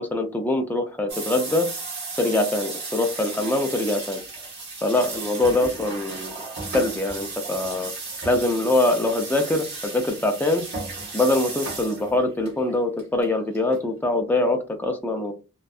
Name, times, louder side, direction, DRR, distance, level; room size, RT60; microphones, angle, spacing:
voice 1, 0.0-1.7 2.2-4.2 4.8-6.3 6.7-7.9 8.3-10.6 11.1-15.3, left 2 dB, 10° left, 3 dB, 0.4 m, -23 dB
sound 1, 1.1-13.8, right 3 dB, 55° right, 1.0 m, -34 dB
2.6 x 2.2 x 2.3 m, 0.30 s
head